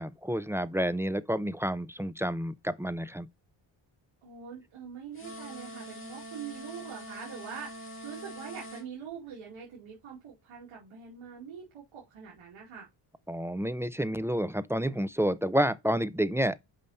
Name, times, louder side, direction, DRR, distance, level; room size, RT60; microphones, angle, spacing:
voice 1, 0.0-3.3 13.3-16.6, equal, 5° right, 0.3 m, -29 dB
voice 2, 4.2-12.9, right 7 dB, 85° right, 2.6 m, -44 dB
sound 1, 5.1-8.9, equal, 25° left, 2.4 m, -44 dB
5.4 x 5.4 x 4.2 m
cardioid pair, 90°, 49 cm